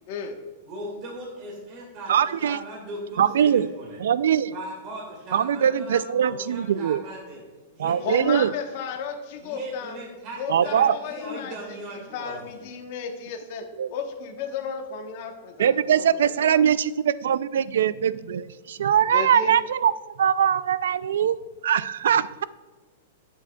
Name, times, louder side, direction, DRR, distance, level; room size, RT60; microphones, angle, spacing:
voice 1, 0.6-4.0 4.5-7.4 7.7-8.2 9.4-12.6, right 1 dB, 30° right, -2 dB, 1.9 m, -38 dB
voice 2, 2.1-2.6 3.2-3.7 4.0-4.5 5.3-7.0 7.8-8.5 10.5-11.0 13.8-13.9 15.6-19.9 20.2-21.4 21.6-22.4, right 9 dB, 80° right, 17 dB, 0.3 m, -22 dB
voice 3, 8.0-10.0 10.4-11.5 11.9-16.6 19.1-19.5, left 6 dB, 40° left, 4 dB, 1.0 m, -34 dB
11.5 x 7.5 x 2.3 m, 1.4 s
supercardioid pair, 175°, 0 cm